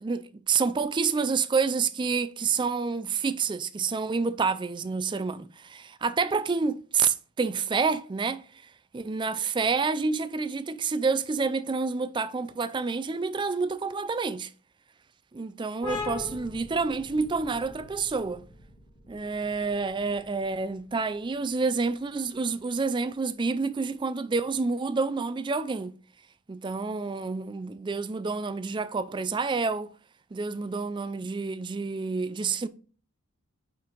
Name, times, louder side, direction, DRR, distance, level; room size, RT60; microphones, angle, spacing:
voice 1, 0.0-8.4 8.9-14.5 15.3-18.4 19.1-25.9 26.5-29.9 30.3-32.7, right 4 dB, 20° right, 0.3 m, -28 dB
sound 1, 15.8-23.1, left 4 dB, 20° left, 1.9 m, -42 dB
5.3 x 5.2 x 3.9 m
head